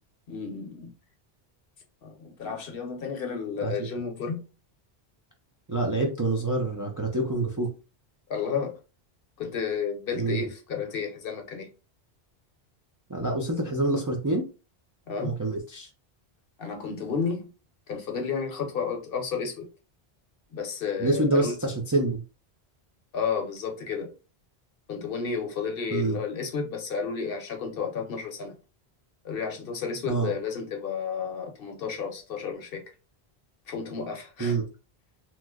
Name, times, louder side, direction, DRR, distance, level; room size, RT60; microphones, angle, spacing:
voice 1, 0.3-0.9 2.0-4.4 8.3-8.8 9.4-11.7 15.1-15.4 16.6-17.5 17.9-19.7 20.5-21.6 23.1-24.1 24.9-28.6 29.2-32.8 33.7-34.6, left 6 dB, 65° left, 0.9 m, -32 dB
voice 2, 5.7-7.7 10.2-10.4 13.1-14.5 15.2-15.9 21.0-22.2 25.9-26.2 30.1-30.3 34.4-34.6, right 2 dB, 30° right, 0.4 m, -26 dB
3.0 x 2.0 x 3.5 m
omnidirectional pair, 1.1 m